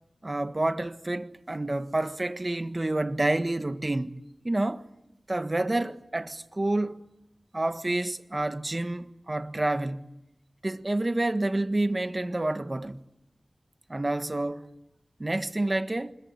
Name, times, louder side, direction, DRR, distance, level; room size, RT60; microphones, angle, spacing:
voice 1, 0.2-4.9 5.3-7.1 7.5-10.1 10.6-13.0 13.9-14.7 15.2-16.1, right 2 dB, 35° right, 1.6 m, -29 dB
25.5 x 21.5 x 9.8 m
wide cardioid pair, 70°, 0 cm